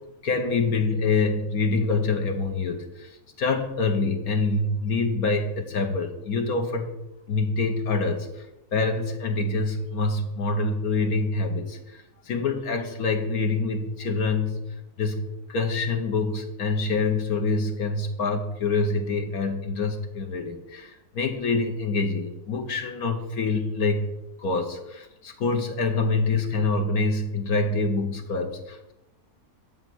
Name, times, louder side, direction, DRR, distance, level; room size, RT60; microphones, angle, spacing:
voice 1, 0.2-7.0 7.3-8.5 8.7-14.6 15.0-24.1 24.4-28.9, left 3 dB, 70° left, 4 dB, 1.5 m, -26 dB
10.5 x 4.5 x 8.0 m, 0.93 s
omnidirectional pair, 1.6 m